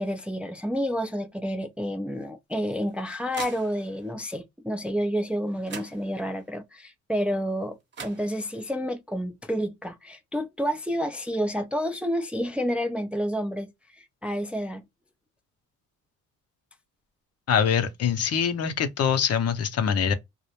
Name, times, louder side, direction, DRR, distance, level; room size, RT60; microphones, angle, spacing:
voice 1, 0.0-14.8, equal, 5° right, 0.3 m, -29 dB
sound 1, 2.5-4.1 5.3-5.4 5.7-6.5 7.6-7.7 7.9-8.8, right 5 dB, 35° right, 0.9 m, -43 dB
voice 2, 17.5-20.1, left 7 dB, 55° left, 0.5 m, -24 dB
2.3 x 2.0 x 2.8 m
cardioid pair, 90°, 30 cm